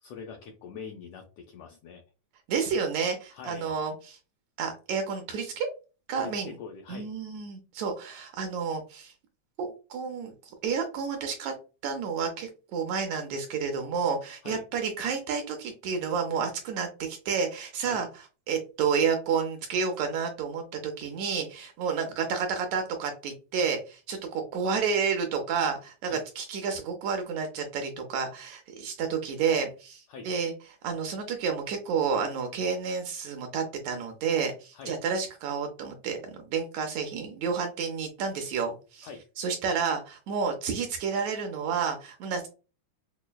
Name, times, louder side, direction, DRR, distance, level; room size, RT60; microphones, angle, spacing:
voice 1, 0.0-2.0 3.3-3.7 6.2-7.1 14.4-14.6 17.9-18.0 26.1-26.2 30.1-30.3 34.7-34.9 39.0-39.2, left 5 dB, 90° left, 2 dB, 1.5 m, -43 dB
voice 2, 2.5-4.2 4.6-5.7 6.1-6.6 6.9-9.1 9.6-11.5 11.8-30.5 30.8-39.1 39.4-42.5, right 6 dB, 75° right, 5 dB, 1.7 m, -30 dB
6.2 x 2.1 x 2.2 m, 0.33 s
omnidirectional pair, 3.5 m